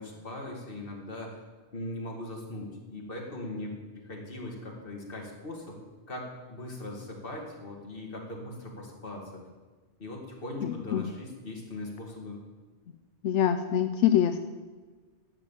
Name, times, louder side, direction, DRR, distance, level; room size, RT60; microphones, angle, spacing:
voice 1, 0.0-1.4 1.7-3.7 4.1-5.8 6.1-9.3 10.0-12.4, left 1 dB, 50° left, 0 dB, 2.4 m, -40 dB
voice 2, 13.2-14.4, left 10 dB, 85° left, 9 dB, 0.9 m, -24 dB
11.5 x 8.3 x 7.2 m, 1.3 s
omnidirectional pair, 1.2 m